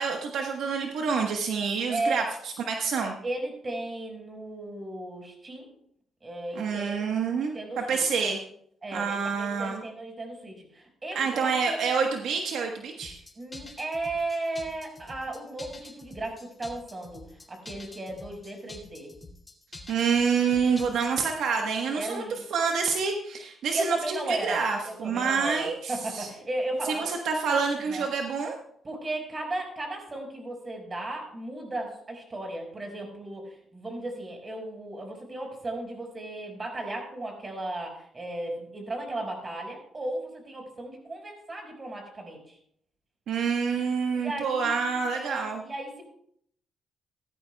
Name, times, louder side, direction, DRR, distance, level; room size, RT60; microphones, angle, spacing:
voice 1, 0.0-3.1 6.5-8.4 8.9-9.8 11.1-13.2 19.9-22.2 22.5-26.3 26.8-28.6 43.3-45.6, right 5 dB, 75° right, 2 dB, 1.2 m, -27 dB
voice 2, 1.9-2.2 3.2-5.7 6.2-8.0 8.8-11.8 13.4-19.1 21.9-22.4 23.7-27.1 27.9-28.1 28.8-42.6 44.1-46.0, right 2 dB, 30° right, 2 dB, 5.1 m, -35 dB
sound 1, 13.0-21.3, left 2 dB, 20° left, 2.3 m, -47 dB
17.0 x 13.0 x 2.3 m, 0.67 s
cardioid pair, 90°, 0 cm